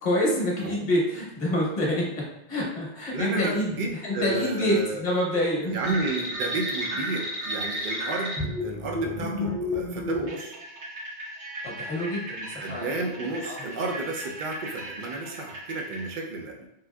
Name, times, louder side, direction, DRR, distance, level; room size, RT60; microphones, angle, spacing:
voice 1, 0.0-3.7 4.0-5.9 11.6-12.9 13.4-13.6, left 1 dB, 45° left, -4 dB, 1.0 m, -27 dB
voice 2, 3.1-5.1 5.7-10.6 12.6-16.7, right 3 dB, 55° right, 1 dB, 0.6 m, -32 dB
sound 1, 5.8-16.0, left 1 dB, 75° right, 1.4 m, -33 dB
3.5 x 2.6 x 2.2 m, 0.83 s
omnidirectional pair, 1.2 m